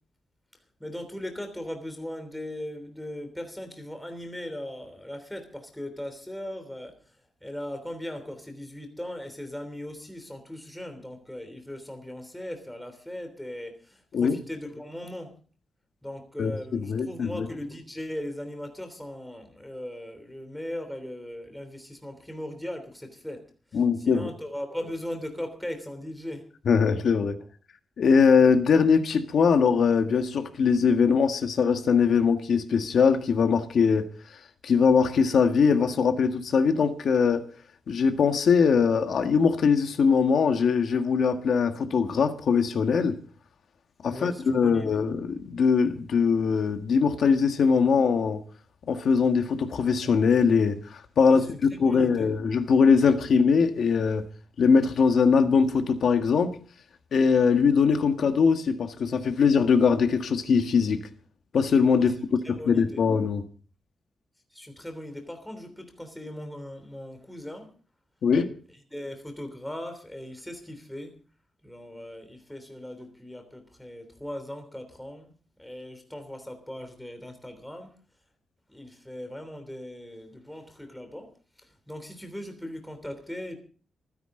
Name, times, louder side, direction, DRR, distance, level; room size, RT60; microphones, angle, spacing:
voice 1, 0.8-6.9 7.4-15.4 16.0-23.5 23.7-26.5 44.1-45.0 51.3-52.3 61.9-62.1 62.4-63.0 64.5-67.7 68.9-71.1 71.6-75.3 75.6-77.9 78.7-81.3 81.9-83.5, left 1 dB, 5° left, 3.2 m, -38 dB
voice 2, 16.4-17.5 23.7-24.3 26.6-27.4 28.0-34.1 34.6-37.5 37.9-43.2 44.0-48.4 48.9-51.5 51.8-54.2 54.6-56.6 57.1-61.0 61.5-62.1 62.5-63.4 68.2-68.5, left 5 dB, 60° left, 1.7 m, -22 dB
27.5 x 10.5 x 3.8 m
wide cardioid pair, 170°, 0 cm